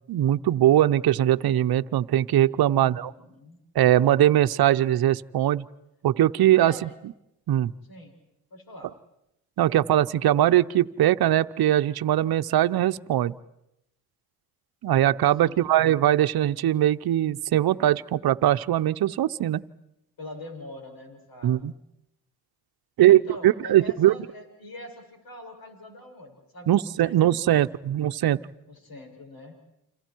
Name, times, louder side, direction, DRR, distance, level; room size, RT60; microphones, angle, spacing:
voice 1, 0.1-3.1 3.7-5.6 6.0-6.9 7.5-7.7 9.6-13.3 14.8-19.6 21.4-21.7 23.0-24.1 26.7-28.4, right 12 dB, 60° right, 13 dB, 0.8 m, -21 dB
voice 2, 2.7-3.6 6.6-6.9 7.9-8.1 8.5-8.9 15.2-15.7 20.2-21.7 23.1-27.2 28.7-29.5, left 1 dB, 55° left, 3 dB, 7.0 m, -44 dB
29.5 x 27.0 x 4.6 m, 0.84 s
supercardioid pair, 65°, 42 cm